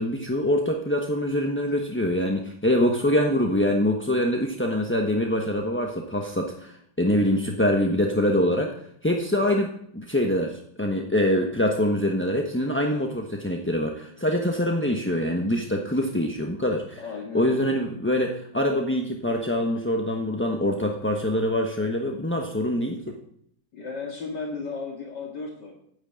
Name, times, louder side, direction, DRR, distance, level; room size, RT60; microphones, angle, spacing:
voice 1, 0.0-8.7 9.0-17.0 17.3-23.1, left 1 dB, 10° left, 2 dB, 0.9 m, -24 dB
voice 2, 17.0-17.8 23.7-25.7, left 4 dB, 65° left, 0 dB, 2.7 m, -35 dB
13.0 x 9.8 x 8.8 m, 0.70 s
omnidirectional pair, 2.0 m